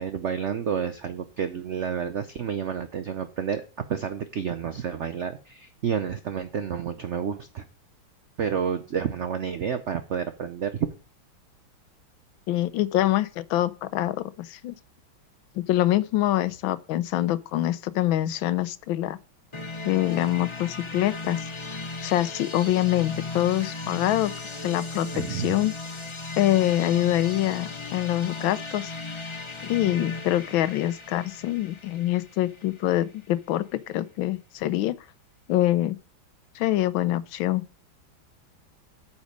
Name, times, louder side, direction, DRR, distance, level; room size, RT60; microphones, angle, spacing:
voice 1, 0.0-3.6 3.9-7.6 8.4-10.9 25.1-25.6, right 7 dB, 90° right, 0.6 m, -30 dB
voice 2, 12.5-14.7 15.6-19.2 19.8-21.4 21.7-24.3 24.6-25.7 26.4-28.9 29.6-34.9 35.5-36.0 36.5-37.6, left 14 dB, 80° left, 1.4 m, -25 dB
sound 1, 19.5-33.3, left 3 dB, 45° left, 0.3 m, -37 dB
8.9 x 7.3 x 5.1 m
omnidirectional pair, 2.2 m